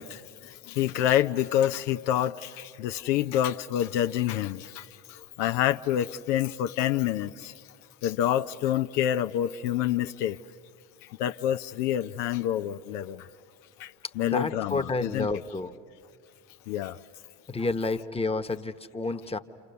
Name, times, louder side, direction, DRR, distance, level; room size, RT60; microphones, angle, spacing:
voice 1, 0.0-7.6 8.0-10.4 11.0-13.3 13.8-15.3 16.7-17.0, left 11 dB, 80° left, 0.7 m, -28 dB
voice 2, 14.2-15.7 17.5-19.4, left 3 dB, 10° left, 1.1 m, -30 dB
29.0 x 27.5 x 6.9 m
hypercardioid pair, 65°, 48 cm